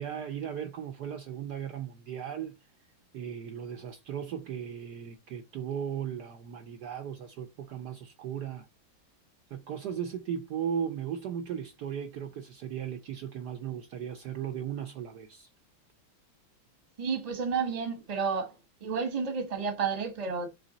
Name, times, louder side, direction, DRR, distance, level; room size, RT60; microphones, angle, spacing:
voice 1, 0.0-2.6 3.1-8.7 9.5-15.5, right 8 dB, 65° right, 1.1 m, -36 dB
voice 2, 17.0-18.5 18.8-20.5, right 5 dB, 25° right, 1.0 m, -31 dB
6.8 x 3.5 x 4.0 m
omnidirectional pair, 2.2 m